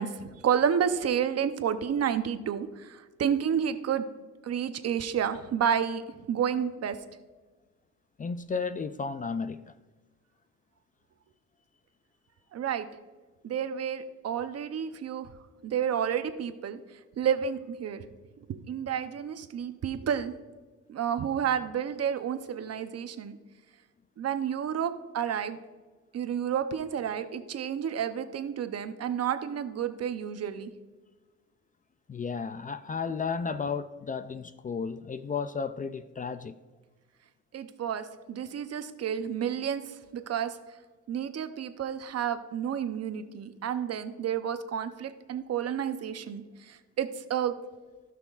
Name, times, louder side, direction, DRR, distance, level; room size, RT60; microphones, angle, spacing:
voice 1, 0.0-4.0 4.4-6.0 6.3-7.0 12.5-12.9 13.4-15.3 15.6-16.8 17.2-18.1 18.5-20.3 20.9-23.4 24.2-25.6 26.1-30.7 37.5-40.6 41.1-47.5, right 8 dB, 55° right, 0.8 m, -30 dB
voice 2, 8.2-9.8 32.1-36.6, left 5 dB, 25° left, 0.4 m, -33 dB
16.5 x 6.0 x 2.5 m
cardioid pair, 90°, 30 cm